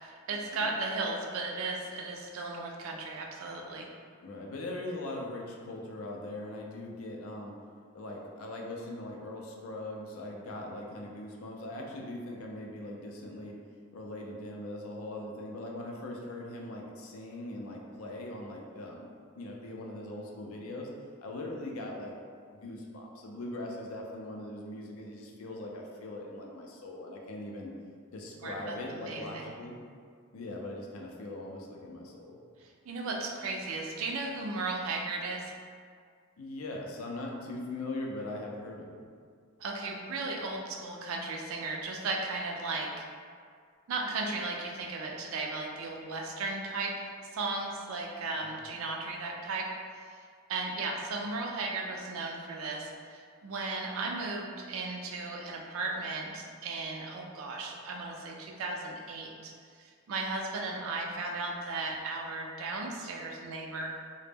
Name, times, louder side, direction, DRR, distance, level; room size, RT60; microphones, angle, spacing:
voice 1, 0.0-3.9 28.4-29.5 32.9-35.5 39.6-43.1 43.9-49.7 49.9-50.0 50.5-59.5 59.8-63.9, right 3 dB, 75° right, 0 dB, 0.4 m, -36 dB
voice 2, 4.2-7.6 7.9-13.6 13.9-20.9 21.2-22.1 22.5-27.7 28.1-29.8 30.3-32.4 36.4-39.0 48.4-48.6, left 1 dB, 80° left, 0 dB, 0.4 m, -40 dB
2.0 x 2.0 x 3.3 m, 2.1 s
head